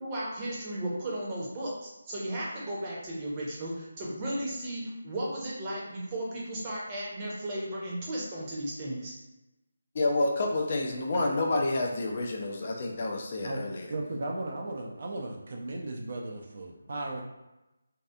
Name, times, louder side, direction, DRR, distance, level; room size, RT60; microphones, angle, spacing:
voice 1, 0.0-9.2, right 1 dB, 20° right, -6 dB, 0.7 m, -35 dB
voice 2, 9.9-13.9, left 2 dB, 40° left, 1 dB, 0.4 m, -29 dB
voice 3, 13.9-17.2, right 2 dB, 50° right, 0 dB, 0.4 m, -36 dB
2.7 x 2.3 x 2.3 m, 0.99 s
figure-of-eight pair, 155°, 0 cm